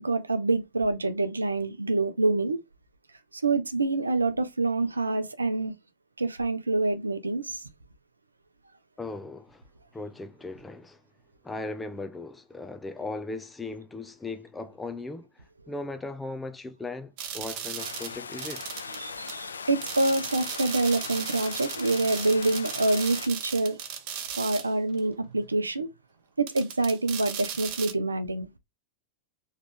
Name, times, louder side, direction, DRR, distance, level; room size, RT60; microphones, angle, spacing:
voice 1, 0.0-2.6 3.3-5.7 6.2-7.6 18.9-23.8 24.4-25.9 26.4-28.5, right 2 dB, 80° right, 0.6 m, -26 dB
voice 2, 9.0-9.6 9.9-11.0 11.4-18.7, left 3 dB, 10° left, 0.5 m, -38 dB
sound 1, 17.2-19.0 19.3-19.4 19.8-24.7 25.0-25.1 26.5-27.9, right 8 dB, 45° right, 0.8 m, -36 dB
sound 2, 17.8-23.3, left 5 dB, 70° left, 0.4 m, -40 dB
3.6 x 3.2 x 3.5 m
figure-of-eight pair, 90°, 0 cm